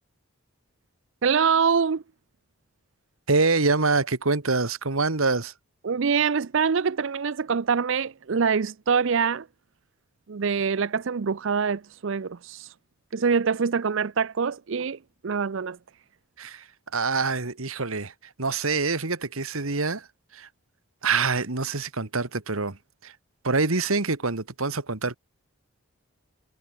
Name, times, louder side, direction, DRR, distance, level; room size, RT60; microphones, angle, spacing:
voice 1, 1.2-2.0 5.8-9.5 10.3-12.7 13.1-15.8, right 6 dB, 65° right, 0.5 m, -24 dB
voice 2, 3.3-5.5 16.4-16.7 16.9-18.1 18.4-20.1 20.3-20.5 21.0-23.1 23.4-25.2, right 3 dB, 80° right, 1.8 m, -25 dB
head